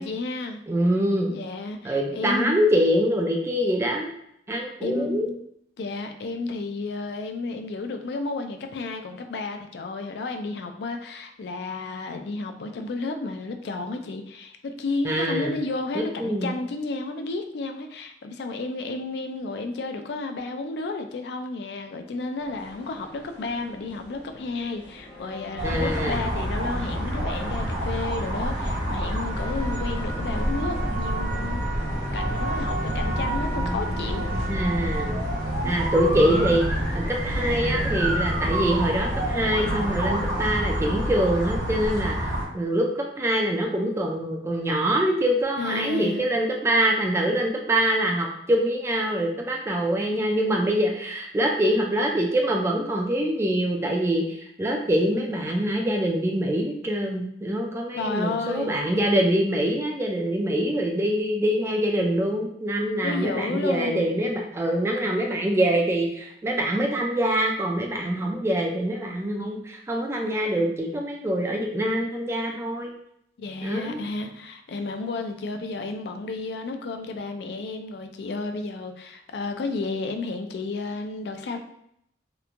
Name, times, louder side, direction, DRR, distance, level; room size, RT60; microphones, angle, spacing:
voice 1, 0.0-0.6 1.3-2.7 4.8-5.4 5.8-31.6 32.1-34.3 35.6-35.7 36.1-36.5 45.6-46.2 58.0-58.9 63.0-64.1 73.4-81.6, left 3 dB, 65° left, 6 dB, 0.3 m, -32 dB
voice 2, 0.7-1.3 1.8-4.1 4.5-5.3 15.0-15.6 15.9-16.5 25.6-26.2 34.5-35.2 35.6-36.7 36.9-72.9 73.6-74.0, right 1 dB, 15° right, 1 dB, 0.3 m, -24 dB
sound 1, 22.4-40.5, left 1 dB, 80° left, 0.9 m, -42 dB
sound 2, 25.6-42.4, right 1 dB, 85° right, 1.0 m, -27 dB
2.9 x 2.1 x 2.5 m, 0.74 s
head